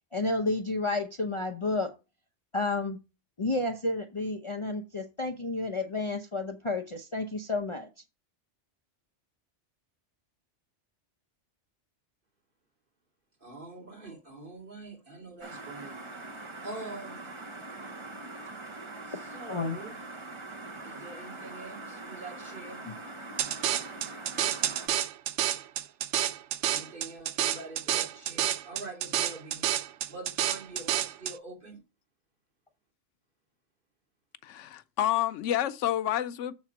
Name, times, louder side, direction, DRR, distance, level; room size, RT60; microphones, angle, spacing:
voice 1, 0.1-1.9 2.5-3.0 3.4-7.9 19.5-19.8 22.9-23.0, left 2 dB, 30° left, 0.7 m, -31 dB
voice 2, 13.4-15.9 16.6-17.3 19.0-20.0 20.8-22.8 26.7-29.7 30.1-31.8, right 2 dB, 45° right, 3.3 m, -44 dB
sound 1, 15.4-24.9, right 2 dB, 25° right, 1.0 m, -43 dB
sound 2, 23.4-31.3, right 11 dB, 80° right, 0.9 m, -29 dB
voice 3, 34.4-36.5, left 12 dB, 85° left, 0.9 m, -29 dB
7.2 x 4.3 x 5.8 m
omnidirectional pair, 1.2 m